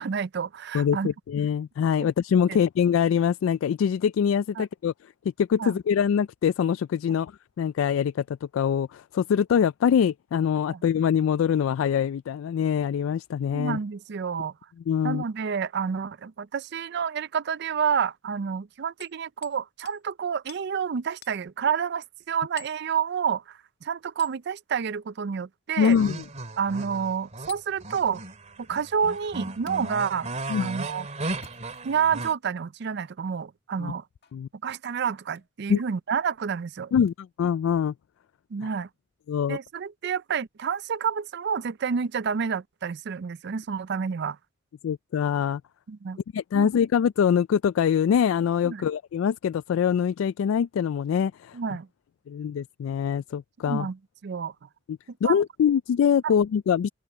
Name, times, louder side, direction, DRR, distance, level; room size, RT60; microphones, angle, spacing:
voice 1, 0.0-1.1 2.0-2.1 2.5-2.6 4.6-4.7 5.6-5.7 10.7-10.8 13.5-14.5 15.0-26.0 26.6-28.2 28.7-30.3 30.6-31.1 31.8-34.0 34.6-36.9 38.5-38.9 39.5-44.4 45.9-46.2 46.5-46.7 48.6-48.8 51.5-51.9 53.6-54.5 55.2-55.4, right 6 dB, 60° right, 0.4 m, -29 dB
voice 2, 0.7-4.9 5.4-7.3 7.6-13.8 14.9-15.2 25.8-26.2 30.5-30.7 33.8-33.9 34.3-34.5 35.7-35.8 36.9-37.9 38.6-38.7 39.3-39.6 44.8-45.6 46.3-51.6 52.3-53.9 54.9-56.9, left 8 dB, 80° left, 0.3 m, -24 dB
Hammer, 19.0-19.6 19.9-20.0 20.5-20.7 21.2-21.4 22.6-22.8 24.2-24.4 25.8-26.1 27.5-27.7 29.7-29.8 31.3-32.1 32.8-32.9 34.2-34.4 35.3-35.5 37.0-37.1, left 10 dB, 55° left, 2.0 m, -48 dB
sound 1, 25.9-32.3, right 2 dB, 35° right, 2.5 m, -36 dB
open air
head